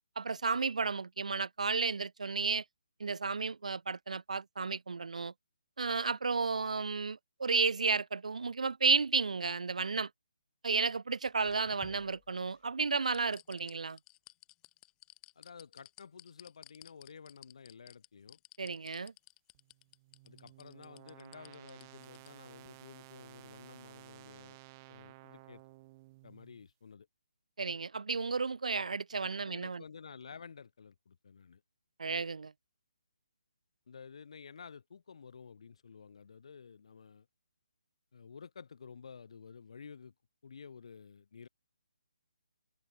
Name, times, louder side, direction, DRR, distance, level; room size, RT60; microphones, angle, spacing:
voice 1, 0.2-2.6 3.0-5.3 5.8-10.1 10.6-14.0 18.6-19.1 27.6-29.8 32.0-32.5, right 4 dB, 80° right, 0.4 m, -32 dB
sound 1, 11.3-12.6 13.0-22.3 22.6-22.7, left 19 dB, 15° left, 0.9 m, -56 dB
voice 2, 15.4-18.4 20.2-24.6 24.9-25.6 26.2-27.1 29.4-31.6 33.9-37.3 38.1-40.1 40.4-41.5, left 6 dB, 60° left, 2.2 m, -52 dB
sound 2, 19.5-26.7, right 21 dB, 25° right, 3.5 m, -55 dB
hypercardioid pair, 155°, 4 cm